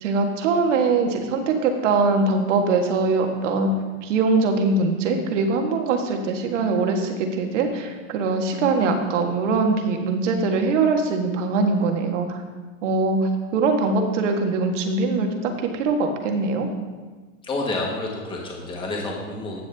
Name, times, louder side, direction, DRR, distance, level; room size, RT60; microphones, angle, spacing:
voice 1, 0.0-3.7 4.0-12.4 12.8-16.7, right 3 dB, 60° right, 4 dB, 1.6 m, -22 dB
voice 2, 17.4-19.6, left 2 dB, 10° left, -1 dB, 1.5 m, -29 dB
11.0 x 7.1 x 3.5 m, 1.4 s
hypercardioid pair, 140°, 40 cm